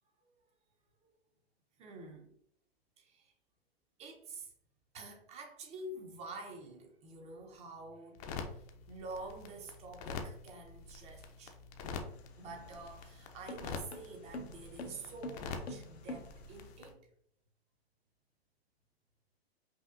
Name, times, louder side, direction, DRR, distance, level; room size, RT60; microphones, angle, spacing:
voice 1, 1.8-2.4 3.0-3.3 4.0-4.5 4.9-11.6 12.4-17.1, right 2 dB, 20° right, 0.6 m, -48 dB
sound 1, 8.2-16.9, left 4 dB, 40° left, 0.6 m, -46 dB
sound 2, 12.1-16.7, left 1 dB, 85° left, 0.7 m, -47 dB
5.4 x 2.3 x 2.4 m
hypercardioid pair, 120°, 31 cm